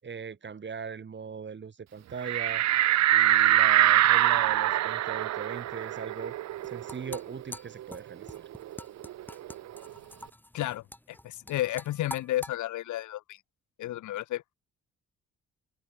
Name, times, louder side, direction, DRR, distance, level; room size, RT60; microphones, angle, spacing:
voice 1, 0.0-2.8 3.1-6.4 6.6-8.5, right 6 dB, 40° right, 2.6 m, -40 dB
sound 1, 2.2-7.4 7.8-7.9 8.2-9.9, right 13 dB, 60° right, 0.7 m, -24 dB
sound 2, 6.5-12.6, left 1 dB, 5° left, 7.5 m, -45 dB
voice 2, 10.5-13.4 13.8-14.4, left 14 dB, 75° left, 1.0 m, -32 dB
cardioid pair, 90°, 30 cm